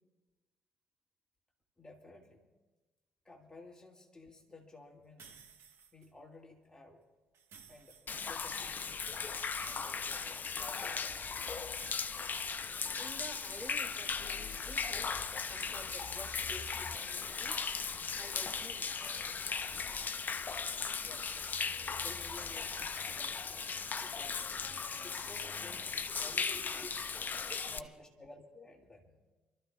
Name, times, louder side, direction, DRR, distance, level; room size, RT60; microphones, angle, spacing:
voice 1, 1.8-2.4 3.2-5.4 5.9-7.0 7.7-9.0 9.6-11.5 21.0-21.3 21.8-23.8 24.0-24.4 25.0-27.1 27.7-29.2, left 2 dB, 15° left, 0 dB, 2.5 m, -55 dB
sound 1, 5.2-6.1 7.3-8.5 9.5-10.9 11.8-13.1, right 6 dB, 60° right, 1.5 m, -57 dB
Human voice / Rain / Stream, 8.1-27.8, left 5 dB, 40° left, 0.8 m, -38 dB
voice 2, 12.6-15.2 15.5-17.8 18.1-19.2 20.8-21.0 21.9-22.0 25.2-25.3 26.4-26.9 27.3-27.9, equal, 15° right, 2 dB, 2.8 m, -51 dB
28.5 x 13.5 x 2.5 m, 1.2 s
hypercardioid pair, 45°, 5 cm